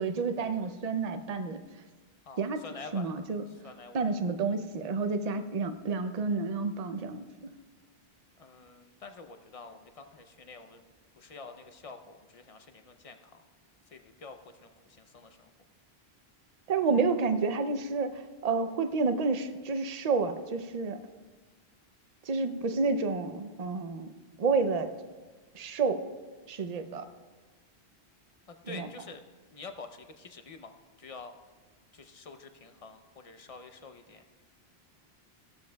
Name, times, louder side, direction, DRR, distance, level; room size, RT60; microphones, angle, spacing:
voice 1, 0.0-1.6 2.4-2.6 2.9-3.4 3.9-7.2 16.7-21.0 22.3-24.1 24.4-24.9 25.5-26.0 26.5-27.0 28.7-28.9, right 4 dB, 45° right, 8 dB, 0.6 m, -29 dB
voice 2, 2.2-3.1 3.5-4.0 8.4-10.8 11.2-13.4 13.9-15.5 28.5-29.2 29.5-31.3 31.9-34.2, left 4 dB, 40° left, 7 dB, 0.7 m, -48 dB
16.5 x 12.5 x 2.3 m, 1.3 s
omnidirectional pair, 1.1 m